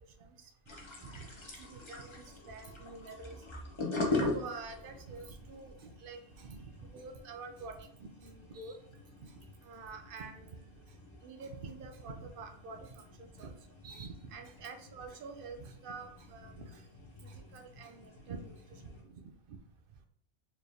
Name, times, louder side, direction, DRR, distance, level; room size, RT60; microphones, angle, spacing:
voice 1, 0.2-0.5 1.0-1.3 1.6-3.3 4.1-8.8 9.2-10.7 11.2-13.5 13.8-16.8 17.2-19.6, right 4 dB, 60° right, 5 dB, 0.7 m, -47 dB
sound 1, 0.6-19.0, left 2 dB, 30° left, 0.6 m, -43 dB
4.3 x 3.3 x 2.7 m, 0.69 s
omnidirectional pair, 1.2 m